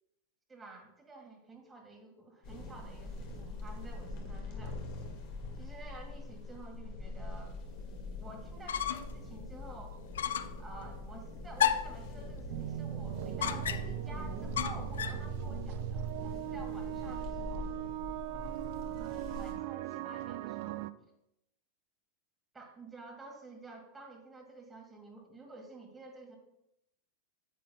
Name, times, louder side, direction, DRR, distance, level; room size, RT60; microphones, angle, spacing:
voice 1, 0.5-4.8 5.6-7.6 8.2-10.0 10.6-17.7 19.4-20.8 22.5-26.4, right 3 dB, 15° right, 1 dB, 1.6 m, -50 dB
sound 1, 2.4-19.5, left 2 dB, 40° left, 1.8 m, -43 dB
sound 2, 8.5-9.2 9.5-9.6 10.1-10.6 11.6-12.0 13.4-14.0 14.6-15.3, left 9 dB, 65° left, 0.4 m, -32 dB
sound 3, 12.5-20.9, right 16 dB, 50° right, 0.3 m, -39 dB
9.8 x 9.1 x 2.2 m, 0.84 s
figure-of-eight pair, 90°, 0 cm